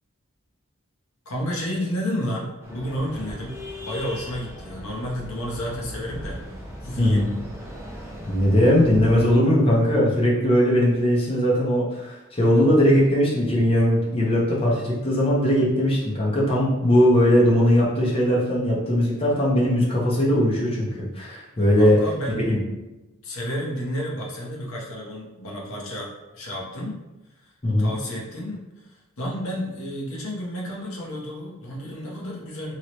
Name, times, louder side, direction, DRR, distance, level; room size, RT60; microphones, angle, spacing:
voice 1, 1.3-3.5 3.8-6.4 6.8-7.3 21.7-22.5 23.2-27.0 27.4-27.5 27.8-32.7, equal, 75° left, -3 dB, 0.9 m, -31 dB
sound 1, 2.6-9.3, equal, 10° right, 0.6 m, -38 dB
voice 2, 7.0-7.3 8.2-22.0 22.3-22.6 27.6-27.9, equal, 25° left, -5 dB, 0.8 m, -19 dB
2.9 x 2.9 x 2.9 m, 1.1 s
head